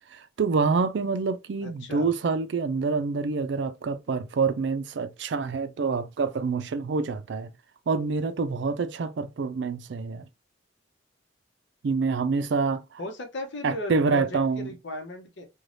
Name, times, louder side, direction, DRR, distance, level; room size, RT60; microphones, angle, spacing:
voice 1, 0.1-7.5 7.9-10.3 11.8-13.0 13.6-14.7, right 4 dB, 65° right, 0.4 m, -27 dB
voice 2, 1.6-2.1 13.0-15.5, left 1 dB, 75° left, 0.8 m, -36 dB
3.2 x 2.3 x 2.6 m
head